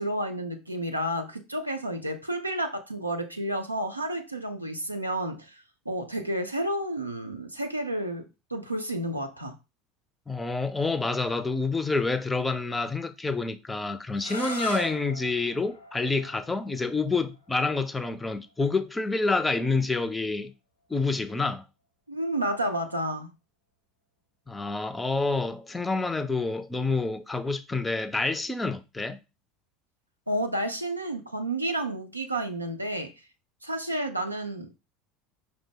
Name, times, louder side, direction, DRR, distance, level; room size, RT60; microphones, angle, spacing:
voice 1, 0.0-9.6 22.1-23.3 30.3-33.1 33.6-34.8, right 1 dB, 90° right, 0.5 m, -31 dB
voice 2, 10.3-20.5 20.9-21.6 24.5-29.2, left 3 dB, 15° left, 0.4 m, -28 dB
sound 1, 14.2-19.9, left 1 dB, 85° left, 0.8 m, -41 dB
4.9 x 2.0 x 3.7 m
figure-of-eight pair, 70°, 0 cm